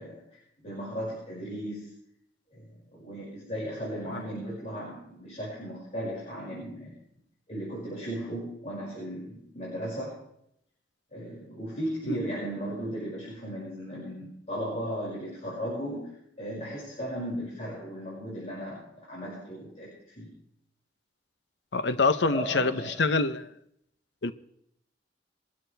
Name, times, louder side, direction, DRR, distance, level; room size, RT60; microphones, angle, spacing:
voice 1, 0.0-1.9 2.5-7.0 7.5-10.2 11.1-20.3 22.0-23.0, equal, 40° left, 5.9 m, -36 dB
voice 2, 21.7-23.5 24.2-24.3, left 3 dB, 70° left, 0.8 m, -25 dB
23.0 x 12.5 x 3.4 m
head